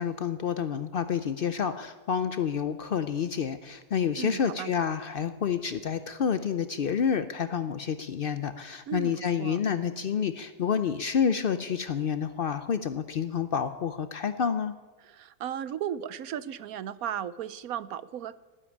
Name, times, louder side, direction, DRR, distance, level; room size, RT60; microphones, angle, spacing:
voice 1, 0.0-14.7, left 7 dB, 85° left, 11 dB, 0.4 m, -29 dB
voice 2, 4.2-4.7 8.9-9.6 15.0-18.3, right 10 dB, 70° right, 17 dB, 1.0 m, -35 dB
12.5 x 11.0 x 9.8 m, 1.4 s
omnidirectional pair, 1.7 m